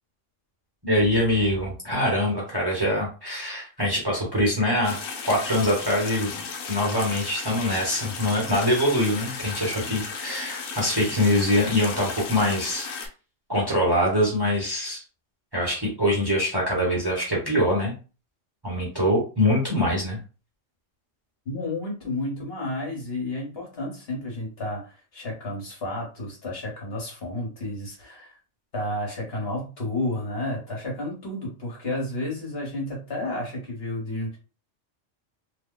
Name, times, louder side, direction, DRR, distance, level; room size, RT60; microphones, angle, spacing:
voice 1, 0.8-5.0 5.2-6.4 6.7-12.9 13.5-15.0 15.5-17.9 18.6-20.2, left 1 dB, 20° right, -4 dB, 1.0 m, -24 dB
sound 1, 4.8-13.1, left 5 dB, 85° left, 1.1 m, -35 dB
voice 2, 21.4-28.3 28.7-34.4, left 1 dB, 55° left, -2 dB, 1.4 m, -31 dB
2.8 x 2.1 x 3.8 m, 0.35 s
omnidirectional pair, 1.3 m